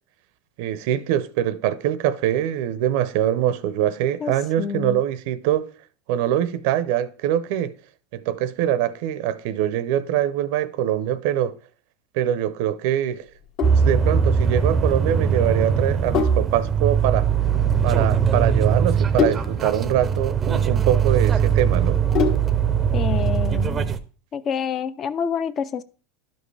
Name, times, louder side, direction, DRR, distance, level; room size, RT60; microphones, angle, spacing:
voice 1, 0.6-5.7 6.1-7.7 8.1-11.6 12.1-13.3 13.8-17.3 17.8-22.0, right 11 dB, 60° right, 0.6 m, -23 dB
voice 2, 4.6-5.0 22.9-23.9 24.3-25.8, left 7 dB, 30° left, 0.5 m, -27 dB
Sink (filling or washing), 13.3-22.7, left 6 dB, 55° left, 1.3 m, -29 dB
sound 1, 13.6-24.0, right 7 dB, 20° right, 0.6 m, -21 dB
12.0 x 5.3 x 3.3 m
supercardioid pair, 140°, 0 cm